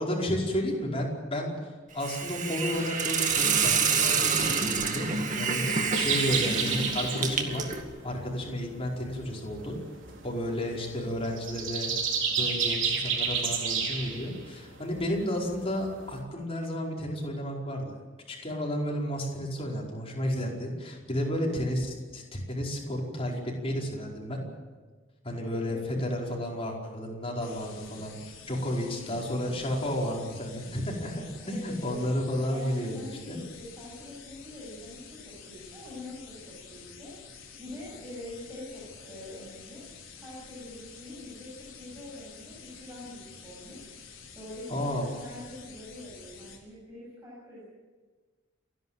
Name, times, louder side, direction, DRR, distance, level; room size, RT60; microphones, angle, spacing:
voice 1, 0.0-7.6 8.0-9.8 10.2-11.9 12.4-18.0 18.3-24.4 25.2-33.4 44.7-45.1, equal, 30° left, -2 dB, 4.9 m, -32 dB
Hiss, 2.0-7.8, right 5 dB, 40° right, 2.1 m, -27 dB
sound 1, 5.9-16.2, right 6 dB, 65° right, 4.3 m, -31 dB
voice 2, 25.3-26.4 31.4-32.0 32.5-39.8 40.2-43.9 44.3-47.6, left 1 dB, 15° right, -7 dB, 7.9 m, -44 dB
sound 2, 27.4-46.6, left 6 dB, 80° left, 4.3 m, -49 dB
29.5 x 11.0 x 9.1 m, 1.4 s
head